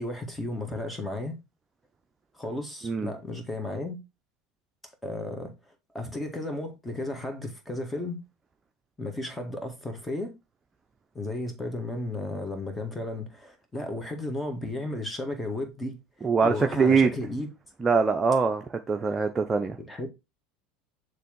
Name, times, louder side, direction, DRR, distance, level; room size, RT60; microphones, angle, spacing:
voice 1, 0.0-1.3 2.4-4.0 5.0-5.5 5.9-8.2 9.0-10.3 11.1-16.0 16.4-17.5 19.0-19.2 19.8-20.1, left 2 dB, 10° left, 1.9 m, -34 dB
voice 2, 16.2-17.1 17.8-18.6 18.9-19.8, right 5 dB, 25° right, 0.7 m, -23 dB
6.8 x 3.3 x 4.6 m
hypercardioid pair, 80°, 0 cm